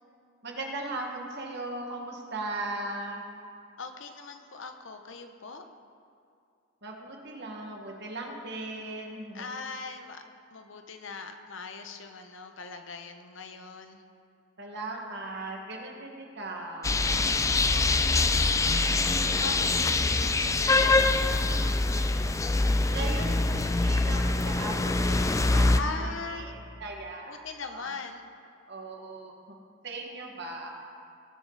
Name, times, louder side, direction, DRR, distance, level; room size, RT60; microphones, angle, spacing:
voice 1, 0.4-3.3 6.8-9.5 14.6-17.3 22.9-27.9 28.7-29.6 29.8-30.7, right 2 dB, 60° right, 0 dB, 1.7 m, -38 dB
voice 2, 3.8-5.6 9.3-10.2 10.5-14.0 17.7-21.6 25.7-26.5 27.3-28.2, left 4 dB, 70° left, 7 dB, 0.9 m, -40 dB
sound 1, 16.8-25.8, left 3 dB, 15° left, 0.4 m, -24 dB
19.5 x 7.4 x 4.0 m, 2.5 s
head